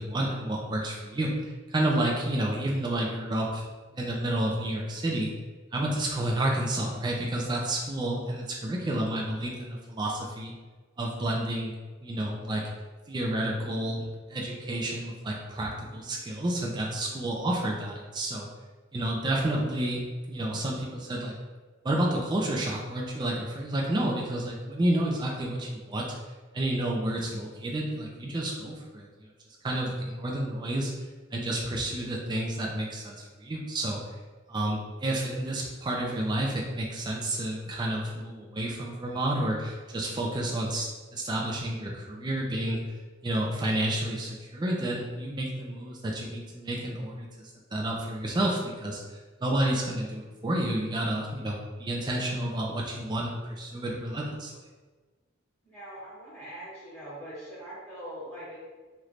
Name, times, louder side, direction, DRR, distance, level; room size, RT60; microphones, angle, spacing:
voice 1, 0.0-3.6 3.9-5.3 5.7-10.5 11.0-11.7 12.0-12.6 13.1-18.5 18.9-20.0 20.3-21.3 21.8-26.1 26.5-29.1 29.6-31.1 31.3-34.0 34.5-42.8 43.2-47.3 47.7-54.5, right 1 dB, 20° right, -2 dB, 0.4 m, -30 dB
voice 2, 55.6-58.6, right 1 dB, 15° left, -10 dB, 1.1 m, -42 dB
3.2 x 3.0 x 2.5 m, 1.3 s
head